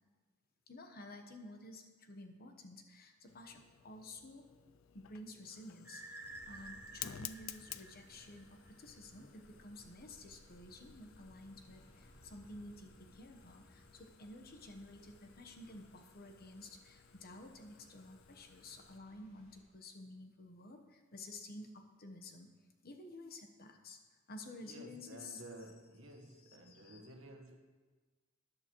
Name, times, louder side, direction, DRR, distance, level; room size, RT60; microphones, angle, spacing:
voice 1, 0.7-4.4 4.9-6.0 6.4-22.5 22.8-24.0 24.3-25.4 26.4-27.1, left 2 dB, 50° left, 5 dB, 1.0 m, -52 dB
Fire, 3.3-19.0, left 11 dB, 70° left, 0.4 m, -55 dB
sound 1, 5.8-8.7, right 2 dB, 10° right, 0.8 m, -52 dB
sound 2, 6.2-19.6, equal, 90° left, 3.4 m, -64 dB
voice 2, 24.6-27.6, right 1 dB, 70° right, 3 dB, 1.4 m, -53 dB
13.0 x 11.0 x 3.1 m, 1.3 s
head